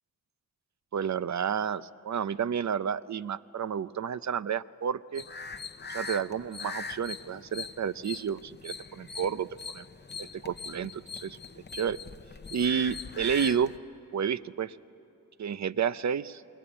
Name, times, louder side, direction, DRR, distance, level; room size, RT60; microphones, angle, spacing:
voice 1, 0.9-5.2 5.9-9.5 9.7-9.8 10.2-11.4 11.7-12.0 12.5-13.7 14.1-14.8 15.4-16.4, right 7 dB, 55° right, 16 dB, 0.6 m, -30 dB
sound 1, 5.1-13.8, left 5 dB, 30° left, 0.7 m, -41 dB
28.0 x 21.0 x 9.9 m, 2.7 s
wide cardioid pair, 130°, 33 cm